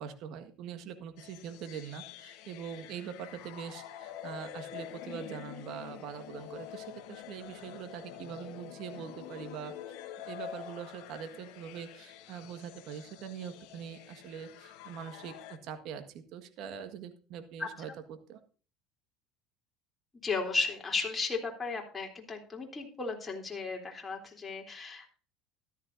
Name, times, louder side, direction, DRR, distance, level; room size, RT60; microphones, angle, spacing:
voice 1, 0.0-9.7 10.2-18.4, right 8 dB, 60° right, 8 dB, 1.6 m, -43 dB
sound 1, 1.2-15.6, left 11 dB, 65° left, 1.2 m, -47 dB
voice 2, 20.2-25.2, left 4 dB, 20° left, 1 dB, 3.4 m, -35 dB
14.0 x 11.5 x 2.7 m, 0.38 s
hypercardioid pair, 75°, 0 cm